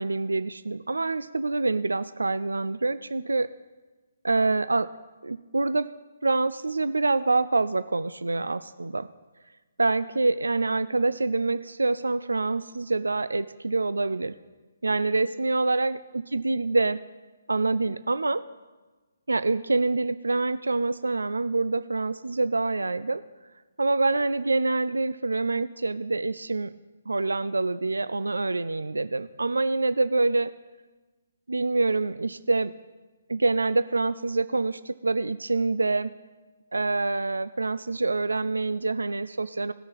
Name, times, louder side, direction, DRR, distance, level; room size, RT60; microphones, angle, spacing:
voice 1, 0.0-3.5 4.2-4.9 5.2-5.9 6.2-9.1 9.8-14.3 14.8-17.0 17.5-18.4 19.3-23.2 23.8-26.7 27.1-30.5 31.5-32.7 33.3-36.1 36.7-39.7, right 3 dB, 85° right, 15 dB, 0.4 m, -26 dB
18.5 x 6.4 x 3.9 m, 1.3 s
figure-of-eight pair, 140°, 0 cm